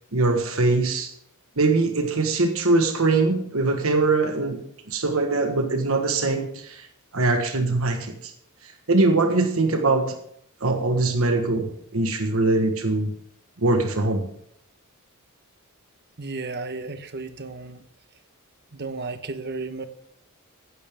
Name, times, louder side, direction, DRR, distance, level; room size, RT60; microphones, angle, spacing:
voice 1, 0.1-1.1 1.6-6.9 7.1-8.3 8.9-10.1 10.6-13.1 13.6-14.3, right 3 dB, 70° right, 6 dB, 1.4 m, -22 dB
voice 2, 16.2-17.8 18.7-19.8, right 3 dB, 50° right, 9 dB, 1.2 m, -33 dB
16.0 x 10.5 x 3.6 m, 0.69 s
head